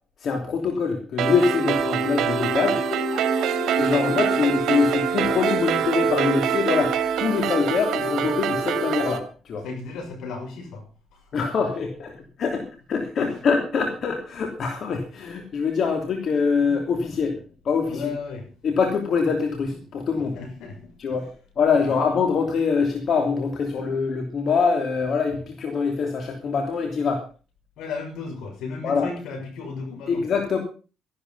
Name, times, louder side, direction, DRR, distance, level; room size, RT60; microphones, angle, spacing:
voice 1, 0.2-2.8 3.8-9.6 11.3-17.4 17.6-18.1 18.6-20.4 21.0-21.3 21.6-27.3 28.8-29.1 30.1-30.6, left 5 dB, 60° left, 3 dB, 3.1 m, -24 dB
sound 1, 1.2-9.2, right 6 dB, 75° right, 2.3 m, -24 dB
voice 2, 2.7-4.0 4.3-4.4 9.6-10.8 11.1-11.3 13.2-13.3 17.1-17.2 17.9-18.5 20.3-21.2 27.8-30.2, left 4 dB, 90° left, 4 dB, 6.3 m, -35 dB
14.0 x 12.0 x 5.6 m, 0.36 s
cardioid pair, 90°, 0 cm